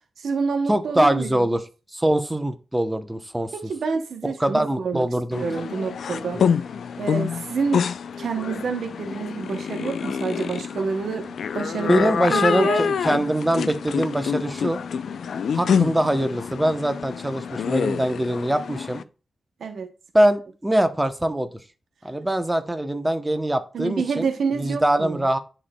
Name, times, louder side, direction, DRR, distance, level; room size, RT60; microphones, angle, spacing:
voice 1, 0.2-1.3 3.5-5.1 5.4-6.4 7.0-7.8 8.2-11.3 11.5-12.8 19.6-19.9 23.7-25.3, right 5 dB, 85° right, 0.7 m, -28 dB
voice 2, 0.7-1.6 1.9-3.5 4.2-5.4 6.3-6.4 11.9-14.8 15.5-19.0 20.1-21.5 22.0-25.4, right 1 dB, 10° right, 0.7 m, -23 dB
sound 1, 5.3-19.0, left 7 dB, 85° left, 0.3 m, -27 dB
10.5 x 4.3 x 2.2 m
wide cardioid pair, 115°, 0 cm